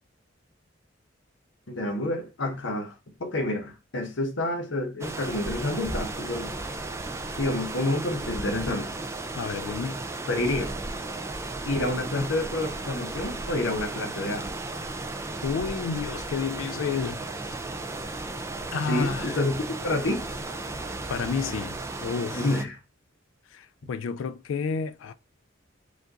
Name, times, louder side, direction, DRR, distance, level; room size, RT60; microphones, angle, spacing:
voice 1, 1.7-2.9 3.2-6.5 7.4-8.9 10.3-10.7 11.7-14.5 18.9-20.2 22.3-22.8, left 2 dB, 70° left, 1.0 m, -28 dB
sound 1, 5.0-22.7, right 2 dB, 15° right, 0.4 m, -35 dB
voice 2, 9.4-10.0 15.4-17.5 18.7-19.4 21.1-22.5 23.5-25.1, left 6 dB, 90° left, 0.3 m, -31 dB
5.0 x 2.5 x 3.8 m
head